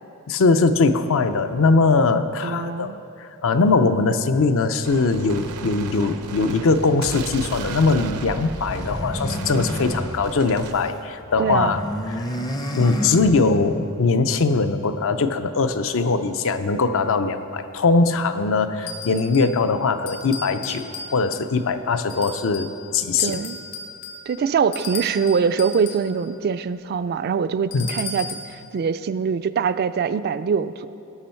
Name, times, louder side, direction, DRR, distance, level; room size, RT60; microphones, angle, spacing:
voice 1, 0.3-2.9 3.2-11.8 12.1-12.2 12.8-23.4 27.7-27.9, left 3 dB, 65° left, 10 dB, 0.5 m, -21 dB
voice 2, 2.4-3.0 11.4-11.8 23.2-23.6 24.3-30.9, right 6 dB, 45° right, 13 dB, 0.3 m, -23 dB
Gunshot gunfire, 4.8-10.7, right 4 dB, 85° right, 0.7 m, -35 dB
sound 1, 8.5-11.0 11.2-13.8, equal, 20° left, 0.5 m, -30 dB
sound 2, 18.9-19.6 20.1-21.5 22.1-22.8 23.2-26.1 27.7-28.6, left 4 dB, 90° left, 1.2 m, -35 dB
18.0 x 6.2 x 4.4 m, 2.8 s
head